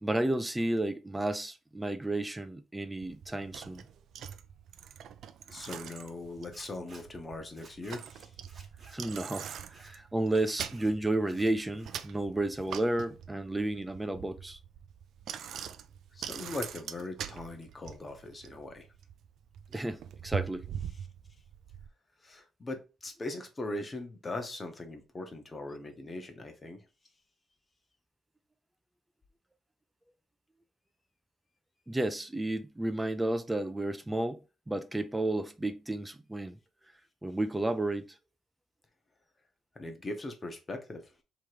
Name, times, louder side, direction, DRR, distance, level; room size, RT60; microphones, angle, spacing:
voice 1, 0.0-3.8 8.9-14.6 19.7-20.7 31.9-36.6 37.2-38.1, right 1 dB, 10° right, 0.4 m, -32 dB
Bicycle, 3.0-21.9, right 8 dB, 70° right, 0.4 m, -43 dB
voice 2, 5.5-8.3 16.1-18.9 22.2-26.9 39.7-41.1, left 2 dB, 25° left, 0.9 m, -40 dB
Zipper (clothing), 5.7-5.8 6.5-7.0 7.5-8.0 8.4-9.0 9.3-9.9 10.3-10.9 11.2-12.1 12.4-13.0, right 3 dB, 35° right, 1.2 m, -56 dB
3.5 x 3.0 x 4.8 m
cardioid pair, 135°, 0 cm